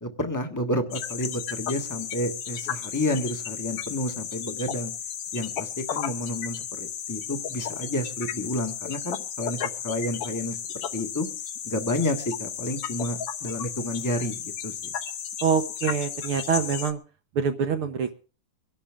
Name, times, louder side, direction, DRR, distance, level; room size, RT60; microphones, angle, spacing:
voice 1, 0.0-4.9 5.3-10.6 10.9-11.3 11.6-14.9, left 1 dB, 10° left, 5 dB, 0.9 m, -30 dB
sound 1, 0.9-16.9, left 8 dB, 60° left, 1.8 m, -34 dB
voice 2, 15.4-17.0 17.4-18.1, right 6 dB, 65° right, 8 dB, 1.4 m, -25 dB
24.0 x 11.5 x 3.7 m, 0.35 s
omnidirectional pair, 3.4 m